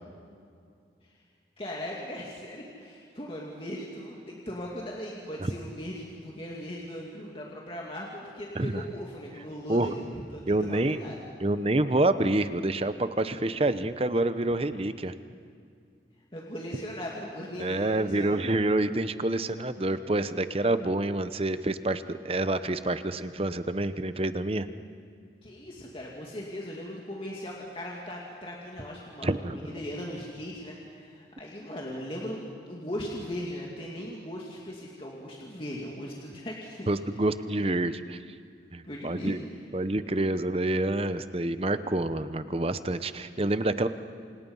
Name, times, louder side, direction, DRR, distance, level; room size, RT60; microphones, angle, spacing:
voice 1, 1.6-11.2 16.3-18.4 25.4-37.3 38.8-39.4, equal, 30° left, -3 dB, 2.5 m, -39 dB
voice 2, 10.5-11.0 11.4-15.1 17.6-24.7 29.2-29.6 36.9-38.2 38.7-39.4 39.7-43.9, right 2 dB, 30° right, 11 dB, 0.8 m, -27 dB
28.0 x 27.5 x 5.6 m, 2.3 s
head